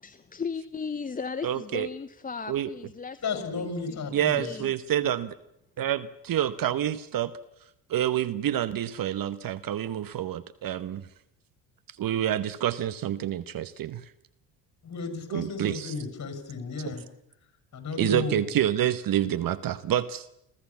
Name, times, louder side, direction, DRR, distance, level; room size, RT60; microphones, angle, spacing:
voice 1, 0.0-4.7, left 5 dB, 15° left, 12 dB, 0.9 m, -37 dB
voice 2, 1.4-1.9 2.5-2.7 4.1-5.3 5.8-7.3 7.9-11.1 12.0-14.0 15.3-15.9 18.0-20.3, right 11 dB, 45° right, 15 dB, 1.1 m, -28 dB
voice 3, 3.2-4.5 14.8-17.0 17.7-18.4, left 4 dB, 35° left, 8 dB, 6.5 m, -33 dB
28.0 x 15.0 x 7.2 m, 0.82 s
hypercardioid pair, 70°, 48 cm